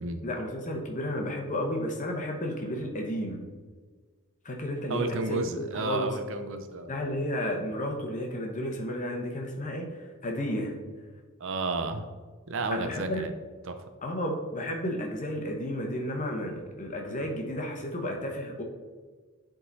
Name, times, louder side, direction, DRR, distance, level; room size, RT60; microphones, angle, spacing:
voice 1, 0.2-3.4 4.4-6.2 6.9-9.9 10.2-10.8 12.7-13.3 14.0-18.6, left 1 dB, 35° left, 2 dB, 1.1 m, -32 dB
voice 2, 4.9-7.1 11.4-12.0 12.5-13.3 13.7-13.8, right 3 dB, 65° right, 7 dB, 0.7 m, -32 dB
10.0 x 3.8 x 4.1 m, 1.4 s
head